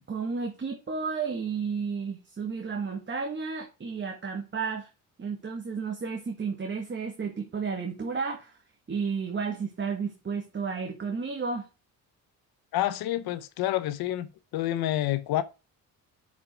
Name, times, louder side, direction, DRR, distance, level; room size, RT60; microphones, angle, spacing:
voice 1, 0.1-4.9 5.2-8.6 8.9-11.7, right 5 dB, 30° right, 1.7 m, -32 dB
voice 2, 12.7-14.3 14.5-15.4, left 14 dB, 80° left, 0.8 m, -28 dB
6.2 x 5.6 x 6.0 m
cardioid pair, 90°, 36 cm